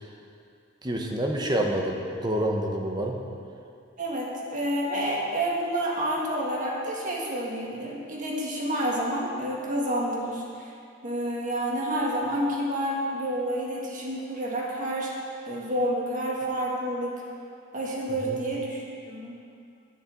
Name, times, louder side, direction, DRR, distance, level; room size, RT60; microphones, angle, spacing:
voice 1, 0.8-3.2 18.2-18.4, right 1 dB, 20° right, 1 dB, 1.0 m, -27 dB
voice 2, 4.0-10.7 11.0-15.1 15.5-17.2 17.7-19.4, right 1 dB, 40° right, -3 dB, 1.9 m, -29 dB
10.5 x 6.5 x 7.8 m, 2.5 s
head